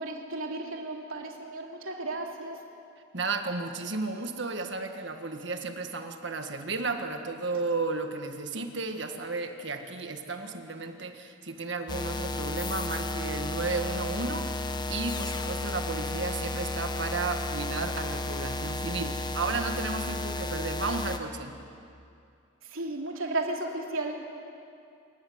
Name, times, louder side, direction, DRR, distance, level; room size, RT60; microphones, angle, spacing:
voice 1, 0.0-2.6 22.6-24.3, right 2 dB, 80° right, 1 dB, 3.0 m, -34 dB
voice 2, 3.1-21.6, right 3 dB, 60° right, 5 dB, 1.7 m, -33 dB
sound 1, 11.9-21.2, left 1 dB, 20° left, 1.0 m, -33 dB
27.0 x 14.5 x 9.5 m, 2.5 s
head